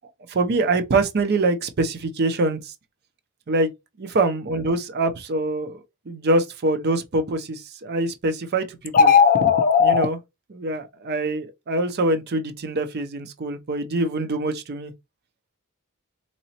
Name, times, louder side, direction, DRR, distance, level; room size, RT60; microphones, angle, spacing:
voice 1, 0.3-2.7 3.5-3.7 4.0-5.8 6.1-9.1 9.8-10.2 10.5-14.9, right 2 dB, 50° right, 0.5 m, -24 dB
sound 1, 8.9-10.1, left 6 dB, 40° left, 0.4 m, -15 dB
3.9 x 3.0 x 2.8 m
head